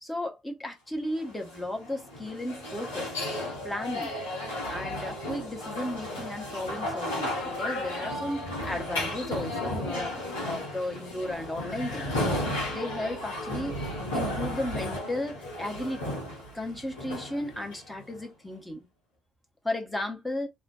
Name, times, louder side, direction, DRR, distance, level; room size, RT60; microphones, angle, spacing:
voice 1, 0.0-3.1 3.6-12.2 12.7-13.9 14.1-16.1 16.5-18.9 19.6-20.5, left 1 dB, 10° left, 0.9 m, -35 dB
sound 1, 1.2-18.2, left 1 dB, 80° left, 0.8 m, -34 dB
2.4 x 2.3 x 2.2 m
figure-of-eight pair, 50°, 0 cm